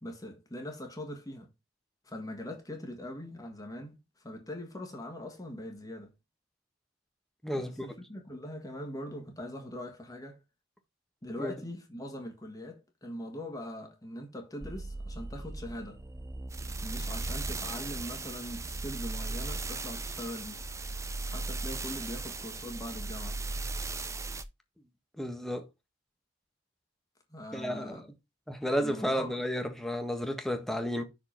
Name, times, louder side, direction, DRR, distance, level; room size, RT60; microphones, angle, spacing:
voice 1, 0.0-1.5 2.0-6.1 7.5-10.4 11.2-16.0 16.8-20.7 21.3-23.4 27.3-28.1 28.8-29.3, left 1 dB, 20° left, 1.7 m, -42 dB
voice 2, 7.4-7.9 11.4-11.5 25.2-25.6 27.5-28.0 28.5-31.0, equal, ahead, 1.4 m, -32 dB
sound 1, 14.6-24.4, right 3 dB, 15° right, 0.6 m, -37 dB
6.1 x 5.1 x 5.8 m
head